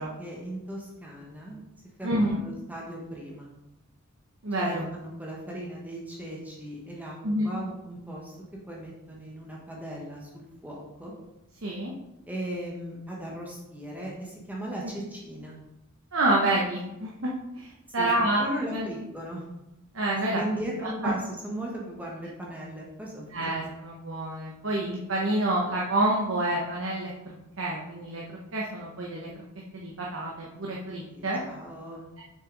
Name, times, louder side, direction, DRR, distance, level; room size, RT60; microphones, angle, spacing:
voice 1, 0.0-1.6 2.0-3.5 4.6-8.3 8.7-11.1 12.3-15.6 18.0-19.4 20.3-23.5 31.1-32.1, right 1 dB, 10° right, -3 dB, 1.3 m, -37 dB
voice 2, 2.0-2.4 4.4-4.9 7.2-7.5 11.6-11.9 16.1-18.4 18.7-18.9 19.9-20.4 23.3-29.3 29.7-31.4, right 1 dB, 65° right, -3 dB, 1.1 m, -28 dB
6.8 x 6.4 x 4.0 m, 0.93 s
head